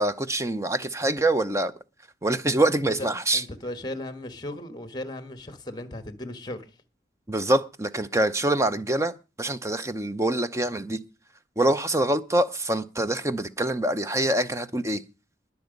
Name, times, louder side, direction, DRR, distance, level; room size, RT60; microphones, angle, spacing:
voice 1, 0.0-1.7 2.2-3.4 7.3-9.1 9.4-11.0 11.6-15.0, right 1 dB, 15° right, 0.7 m, -25 dB
voice 2, 3.3-6.7, left 1 dB, 20° left, 1.4 m, -36 dB
20.5 x 7.1 x 5.3 m
head